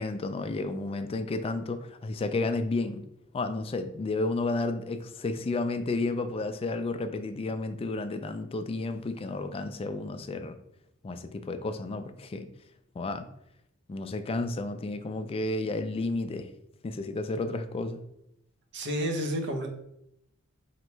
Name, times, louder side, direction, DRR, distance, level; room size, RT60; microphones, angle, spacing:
voice 1, 0.0-3.0 3.3-10.6 11.0-12.5 13.0-13.3 13.9-16.5 16.8-18.0, left 2 dB, 25° left, 0.3 m, -32 dB
voice 2, 18.7-19.7, equal, 55° right, 0.7 m, -30 dB
3.1 x 2.9 x 4.4 m
head